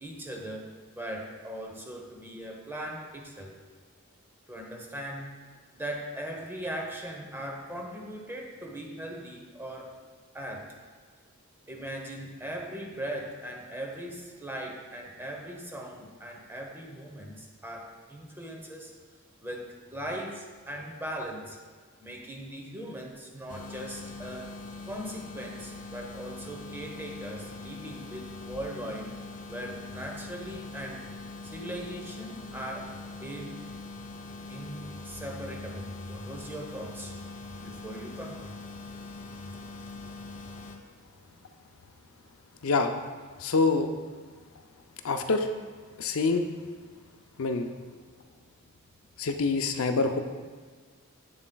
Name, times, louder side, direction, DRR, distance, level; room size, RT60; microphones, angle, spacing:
voice 1, 0.0-3.5 4.5-5.3 5.7-9.9 10.3-10.7 11.7-18.9 19.4-21.6 22.0-24.5 24.9-29.2 29.5-31.1 31.4-32.9 33.2-33.6 34.5-37.1 37.6-38.6, right 1 dB, 10° right, 0 dB, 0.8 m, -39 dB
sound 1, 23.5-40.8, left 3 dB, 40° left, 0.5 m, -42 dB
voice 2, 43.4-43.9 45.0-45.5 46.0-46.4 47.4-47.7 49.2-50.2, left 4 dB, 85° left, 6 dB, 0.5 m, -25 dB
7.8 x 7.1 x 2.3 m, 1.5 s
head